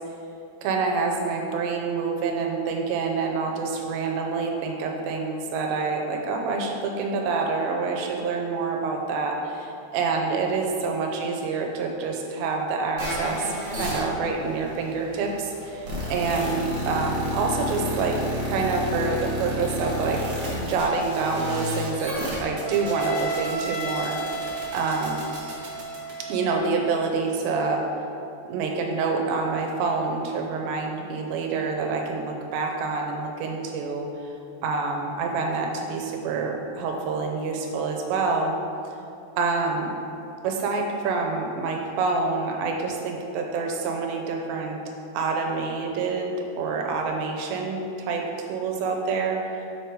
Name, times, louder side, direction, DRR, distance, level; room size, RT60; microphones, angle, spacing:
voice 1, 0.6-16.6 16.9-18.2 18.4-20.2 20.7-22.1 22.4-24.5 24.7-25.2 26.3-27.8 28.5-34.1 34.6-38.5 39.4-39.9 40.4-44.8 45.1-49.4, right 4 dB, 85° right, 1 dB, 2.9 m, -27 dB
sound 1, 13.0-26.6, equal, 55° right, 1.5 m, -31 dB
7.4 x 4.7 x 4.7 m, 2.7 s
omnidirectional pair, 5.0 m